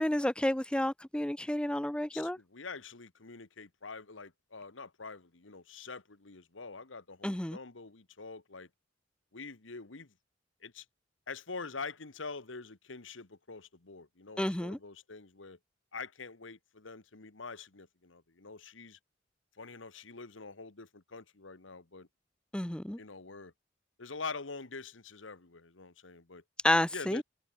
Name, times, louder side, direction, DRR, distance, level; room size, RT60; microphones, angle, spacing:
voice 1, 0.0-2.4 7.2-7.6 14.4-14.8 22.5-23.0 26.6-27.2, left 1 dB, 5° left, 0.5 m, -30 dB
voice 2, 2.1-8.7 9.3-10.1 10.6-10.8 11.3-15.6 15.9-19.0 19.6-22.1 23.0-23.5 24.0-26.4 26.9-27.2, left 4 dB, 80° left, 1.6 m, -45 dB
head